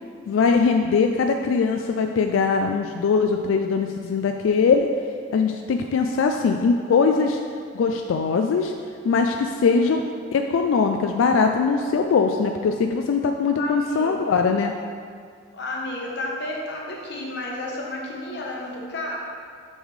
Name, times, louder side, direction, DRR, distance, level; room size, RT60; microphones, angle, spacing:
voice 1, 0.3-4.9 5.3-7.4 7.7-8.7 9.0-10.0 10.3-14.7, left 5 dB, 80° left, 4 dB, 0.3 m, -21 dB
voice 2, 13.6-14.2 15.5-19.2, left 1 dB, 60° left, -2 dB, 1.0 m, -32 dB
6.9 x 5.5 x 3.2 m, 2.1 s
head